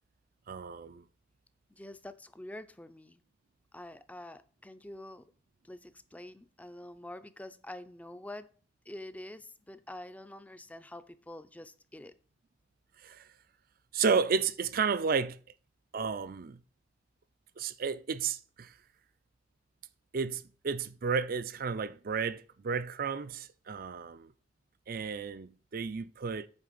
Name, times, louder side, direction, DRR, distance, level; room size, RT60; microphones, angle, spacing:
voice 1, 0.5-1.0 13.0-13.3 13.9-15.4 15.9-16.6 17.6-18.7 20.1-24.3 24.9-26.5, right 5 dB, 55° right, 0.5 m, -32 dB
voice 2, 1.8-3.2 3.7-5.2 5.7-8.5 8.9-12.1, left 1 dB, 10° left, 0.5 m, -46 dB
8.8 x 3.4 x 6.5 m
head